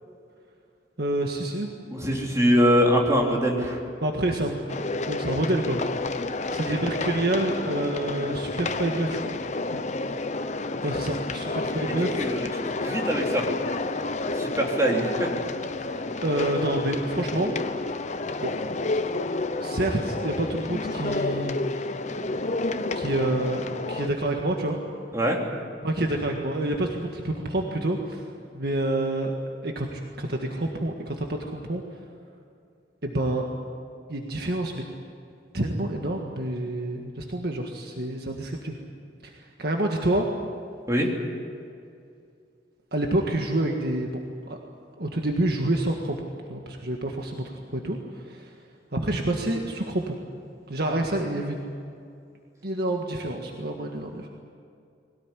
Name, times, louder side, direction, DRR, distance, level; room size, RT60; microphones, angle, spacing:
voice 1, 1.0-1.7 4.0-4.7 5.1-5.8 6.1-9.3 9.7-9.8 10.2-10.3 10.8-12.3 16.2-17.9 18.4-18.5 19.6-21.6 21.8-21.9 22.9-24.8 25.8-28.3 28.5-29.4 29.6-32.0 33.0-33.5 34.1-34.8 35.5-38.8 39.2-40.3 42.9-44.2 44.5-44.6 45.0-50.2 50.7-51.8 52.6-54.3, right 1 dB, 60° right, 1 dB, 1.7 m, -28 dB
voice 2, 1.9-3.8 6.5-6.9 12.1-12.5 12.8-13.4 14.3-15.3 25.1-25.4 40.9-41.1, equal, 15° right, -1 dB, 3.3 m, -23 dB
sound 1, 4.7-24.1, left 3 dB, 40° left, 0.9 m, -30 dB
21.5 x 18.0 x 9.9 m, 2.4 s
head